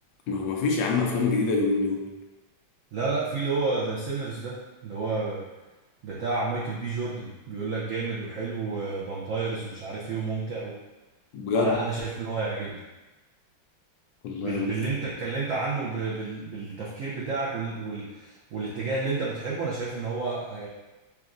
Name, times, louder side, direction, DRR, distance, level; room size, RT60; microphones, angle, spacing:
voice 1, 0.3-2.1 11.3-11.7 14.2-14.7, left 4 dB, 75° left, 0 dB, 1.3 m, -25 dB
voice 2, 2.9-5.4 6.0-10.7 11.5-12.8 14.4-20.7, right 3 dB, 65° right, -6 dB, 0.8 m, -30 dB
6.0 x 2.4 x 2.5 m, 1.1 s
omnidirectional pair, 2.0 m